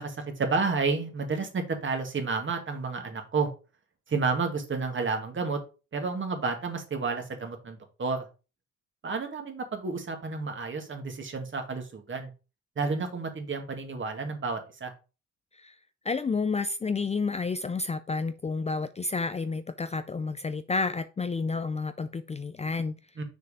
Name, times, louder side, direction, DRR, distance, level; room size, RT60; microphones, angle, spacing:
voice 1, 0.0-3.5 4.1-5.6 5.9-8.3 9.0-12.3 12.8-14.9 23.2-23.3, right 4 dB, 40° right, 2.1 m, -31 dB
voice 2, 16.0-23.0, left 4 dB, 20° left, 0.5 m, -30 dB
6.5 x 4.7 x 4.9 m
cardioid pair, 90°, 30 cm